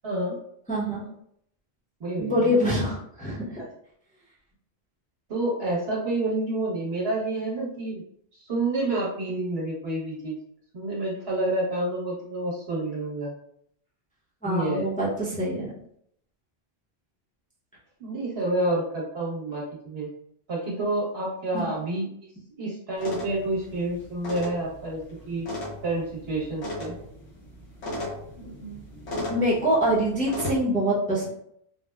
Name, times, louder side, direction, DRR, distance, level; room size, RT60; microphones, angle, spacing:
voice 1, 0.0-0.4 2.0-2.5 5.3-8.0 8.4-10.3 10.7-13.3 14.4-14.9 18.0-20.1 20.5-22.1 22.6-25.0 25.3-25.5 25.8-26.9, right 2 dB, 65° right, -4 dB, 1.3 m, -28 dB
voice 2, 0.7-1.0 2.2-3.6 14.4-15.7 21.5-21.7 29.1-31.3, equal, 10° left, -7 dB, 0.7 m, -25 dB
sound 1, 23.0-30.6, left 1 dB, 75° left, 1.2 m, -37 dB
3.9 x 2.1 x 2.3 m, 0.71 s
omnidirectional pair, 1.1 m